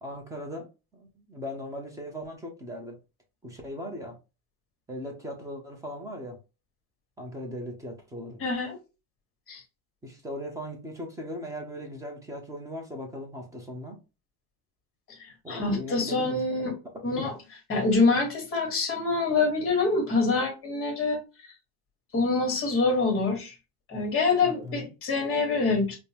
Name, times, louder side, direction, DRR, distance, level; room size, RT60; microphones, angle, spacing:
voice 1, 0.0-3.0 3.4-4.2 4.9-6.4 7.2-8.4 10.0-14.0 15.4-16.4 17.2-17.3 24.4-24.9, equal, 10° right, 0.5 m, -38 dB
voice 2, 8.4-8.8 9.5-9.6 15.2-16.7 17.0-17.3 17.7-21.5 22.1-23.5 23.9-26.0, left 3 dB, 30° left, 1.3 m, -26 dB
5.2 x 2.1 x 2.8 m
cardioid pair, 165°, 45 cm